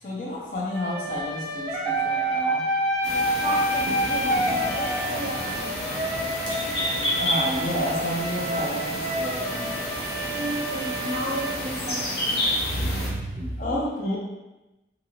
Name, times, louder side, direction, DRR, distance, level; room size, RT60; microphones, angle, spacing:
voice 1, 0.0-2.7 7.2-9.8 13.6-14.2, left 1 dB, 45° left, -3 dB, 0.7 m, -30 dB
sound 1, 0.7-12.5, right 1 dB, ahead, 0.5 m, -28 dB
sound 2, 3.0-13.1, equal, 75° left, 1.0 m, -30 dB
voice 2, 3.4-6.3 10.3-12.4 12.6-13.5, right 1 dB, 35° right, -1 dB, 0.6 m, -33 dB
3.8 x 2.6 x 3.0 m, 1.0 s
head